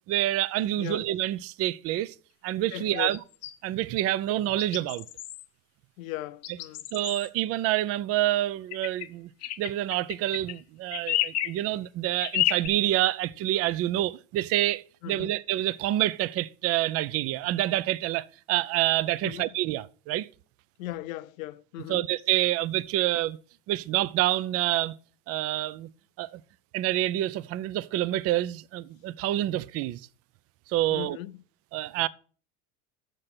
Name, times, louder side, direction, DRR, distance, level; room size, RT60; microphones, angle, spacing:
voice 1, 0.1-2.1 2.4-3.2 3.6-5.0 6.9-9.3 9.6-20.3 21.9-23.4 23.7-24.9 25.3-25.9 26.2-26.4 26.7-30.0 30.7-31.2 31.7-32.1, right 14 dB, 35° right, 0.4 m, -27 dB
voice 2, 0.8-1.1 2.7-3.1 6.0-6.8 15.0-15.3 19.2-19.5 20.8-22.1 30.9-31.4, left 16 dB, 80° left, 0.6 m, -37 dB
sound 1, 3.1-3.5 4.6-5.5 6.4-7.3 8.7-9.1 9.4-10.6 10.9-11.6 12.2-12.7, left 13 dB, 40° left, 0.6 m, -30 dB
7.3 x 6.7 x 5.9 m
supercardioid pair, 105°, 41 cm